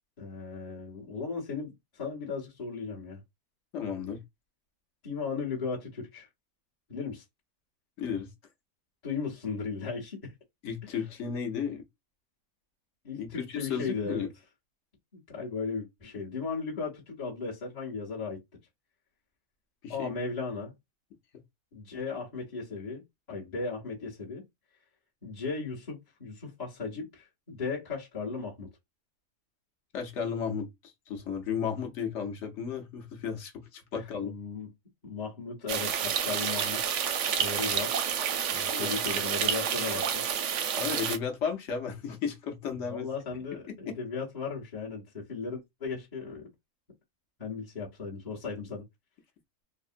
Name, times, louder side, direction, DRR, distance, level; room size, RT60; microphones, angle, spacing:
voice 1, 0.2-3.2 5.0-6.3 6.9-7.2 9.0-10.3 10.9-11.0 13.0-14.2 15.1-18.4 19.9-20.7 21.7-24.4 25.2-28.7 33.9-34.7 35.0-36.9 37.4-37.9 38.5-40.3 42.9-46.5 47.4-48.8, left 4 dB, 30° left, 0.9 m, -36 dB
voice 2, 3.7-4.2 8.0-8.3 10.6-11.8 13.2-14.3 19.8-20.1 29.9-34.3 38.7-39.0 40.8-43.1, left 7 dB, 60° left, 0.9 m, -34 dB
sound 1, 35.7-41.2, right 8 dB, 65° right, 0.8 m, -29 dB
3.5 x 2.0 x 2.4 m
omnidirectional pair, 1.6 m